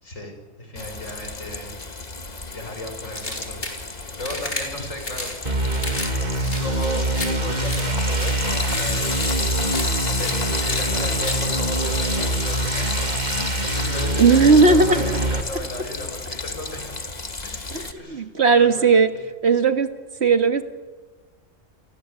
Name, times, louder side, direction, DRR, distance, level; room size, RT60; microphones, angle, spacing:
voice 1, 0.0-1.8 2.5-5.3 6.6-9.3 10.2-16.9 17.4-18.3 18.5-19.0, left 1 dB, 75° left, 4 dB, 6.2 m, -35 dB
Frying (food), 0.8-17.9, left 3 dB, 35° left, 1.6 m, -31 dB
sound 1, 3.1-3.8 4.2-4.6 5.0-5.3 5.7-6.1 6.4-7.3 7.6-7.8 8.2-8.3 8.7-8.8 9.2-9.3 9.6-9.8 10.2-10.3 10.7-10.8 11.2-11.4, left 2 dB, 60° left, 5.5 m, -31 dB
sound 2, 5.4-15.4, right 1 dB, 35° right, 2.5 m, -25 dB
voice 2, 14.2-15.0 17.7-19.1 19.4-19.9 20.2-20.6, right 4 dB, 55° right, 8 dB, 1.9 m, -16 dB
29.5 x 23.0 x 8.2 m, 1.3 s
omnidirectional pair, 1.3 m